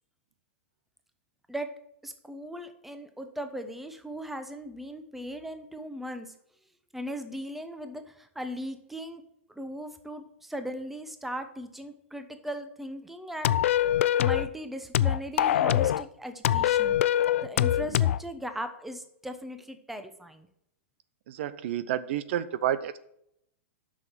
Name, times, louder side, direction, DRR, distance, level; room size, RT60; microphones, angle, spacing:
voice 1, 2.0-6.3 6.9-9.2 9.6-13.6 14.2-17.0 17.4-20.5, equal, 5° right, 8 dB, 0.9 m, -38 dB
sound 1, 13.4-14.5 14.9-16.0 16.4-18.2, left 11 dB, 75° left, 0.4 m, -23 dB
voice 2, 21.3-23.0, right 11 dB, 60° right, 15 dB, 0.6 m, -30 dB
7.5 x 6.3 x 7.4 m, 0.74 s
hypercardioid pair, 140°, 7 cm